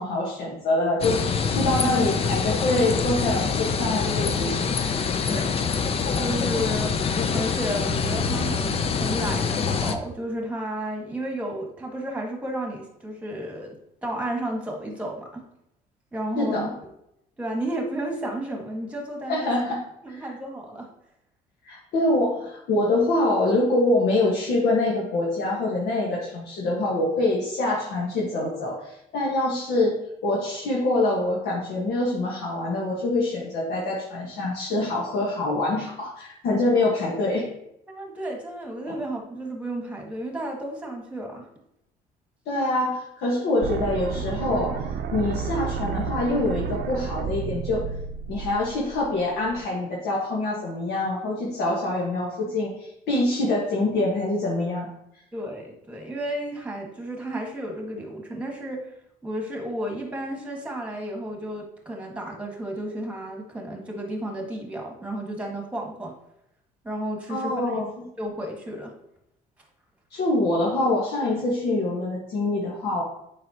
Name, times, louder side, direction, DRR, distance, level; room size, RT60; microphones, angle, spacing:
voice 1, 0.0-4.8 16.4-16.7 19.3-19.8 20.1-20.3 21.6-30.0 30.2-37.5 42.5-44.8 45.1-47.9 48.3-54.9 67.3-68.0 70.1-73.0, left 2 dB, 75° left, -4 dB, 1.4 m, -25 dB
sound 1, 1.0-10.0, left 5 dB, 35° left, 0.5 m, -25 dB
voice 2, 6.2-13.8 14.0-15.4 16.1-16.7 17.4-19.5 20.0-20.9 37.9-41.5 55.3-58.9 59.2-66.1 66.8-67.8 68.2-68.9, right 1 dB, 10° right, 1 dB, 1.6 m, -32 dB
sound 2, 43.6-49.6, right 6 dB, 75° right, 0.6 m, -31 dB
7.6 x 5.2 x 2.8 m, 0.80 s
cardioid pair, 110°, 17 cm